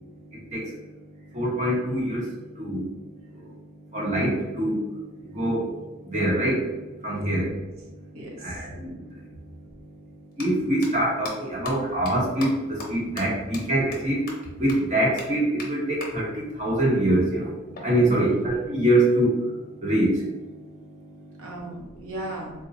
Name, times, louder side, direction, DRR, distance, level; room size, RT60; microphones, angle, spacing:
voice 1, 1.3-2.3 2.6-2.8 3.9-4.8 5.3-5.7 6.1-6.7 7.0-7.5 8.4-9.0 10.4-14.2 14.6-17.5 17.8-19.4 19.8-20.1, right 1 dB, 30° right, -5 dB, 1.0 m, -24 dB
voice 2, 7.1-7.5 8.1-8.7 18.1-18.4 21.4-22.5, right 1 dB, 75° right, -1 dB, 0.8 m, -37 dB
sound 1, 9.1-9.2 10.2-10.4 10.8-10.9 11.2-11.3 11.6-11.7 12.1-12.2 12.4-12.5 12.8-12.9 13.2-13.3 13.5-13.6 13.9-14.0 14.3-14.4 14.7-14.8 15.2-15.3 15.6-15.7 16.0-16.1 17.7-18.8, left 3 dB, 45° left, 0.7 m, -38 dB
3.9 x 2.2 x 2.6 m, 1.1 s
head